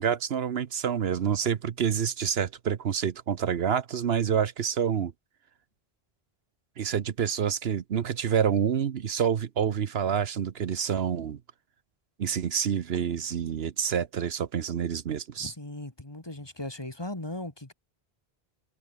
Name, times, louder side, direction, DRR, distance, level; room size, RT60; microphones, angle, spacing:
voice 1, 0.0-5.1 6.8-11.4 12.2-15.5, right 8 dB, 70° right, 1.1 m, -28 dB
voice 2, 15.4-17.7, left 1 dB, 25° left, 2.1 m, -38 dB
omnidirectional pair, 1.1 m